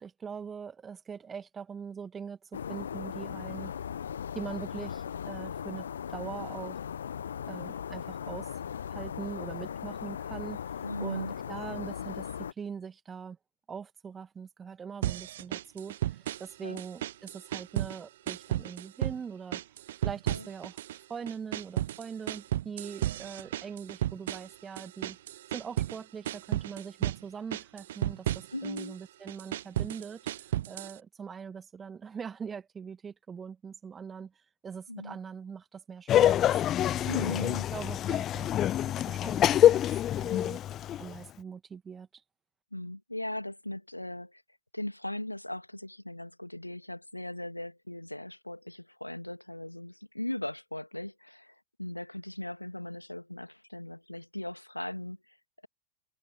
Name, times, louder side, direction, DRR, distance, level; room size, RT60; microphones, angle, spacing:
voice 1, 0.0-3.8 4.3-6.8 7.5-8.5 8.9-12.3 12.6-13.4 13.7-19.6 20.0-20.8 21.1-25.2 25.5-34.3 34.6-36.5 36.8-40.6 41.0-42.2, right 6 dB, 20° right, 2.3 m, -42 dB
sound 1, 2.5-12.5, left 8 dB, 65° left, 1.2 m, -38 dB
voice 2, 10.8-11.4 16.6-16.8 20.3-20.5 28.5-29.0 34.9-35.2 37.1-37.7 42.7-44.4 44.7-55.4, left 1 dB, 85° left, 2.3 m, -38 dB
sound 2, 15.0-16.5 16.8-18.0 18.3-19.2 19.5-21.0 21.3-26.0 26.2-27.2 27.5-28.9 29.3-31.0, right 13 dB, 60° right, 0.7 m, -33 dB
Laughter, 36.1-41.2, left 11 dB, 30° left, 0.4 m, -25 dB
figure-of-eight pair, 90°, 0 cm